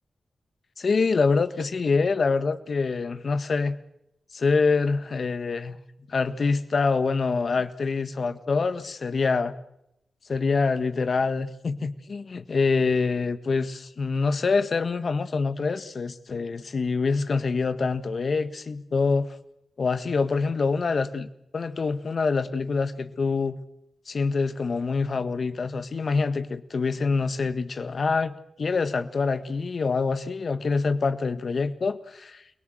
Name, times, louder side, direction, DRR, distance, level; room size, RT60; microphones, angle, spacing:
voice 1, 0.8-3.7 4.3-5.8 6.1-9.6 10.3-19.3 19.8-21.3 21.5-23.6 24.1-28.3 28.6-32.4, left 4 dB, 60° left, 11 dB, 1.6 m, -25 dB
29.5 x 18.5 x 7.8 m, 0.83 s
supercardioid pair, 40°, 0 cm